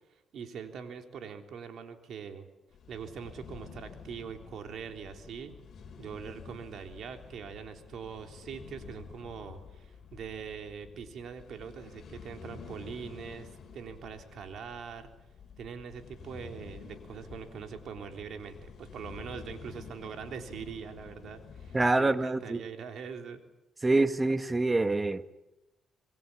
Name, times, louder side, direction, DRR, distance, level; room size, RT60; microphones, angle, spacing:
voice 1, 0.3-2.5 2.9-5.5 6.0-13.5 13.7-15.1 15.6-23.4, right 7 dB, 65° right, 6 dB, 3.4 m, -42 dB
sound 1, 2.7-21.9, left 6 dB, 55° left, 4.0 m, -49 dB
voice 2, 21.7-22.6 23.8-25.3, right 2 dB, 20° right, 12 dB, 1.3 m, -26 dB
27.0 x 22.0 x 8.6 m, 1.0 s
cardioid pair, 90°, 0 cm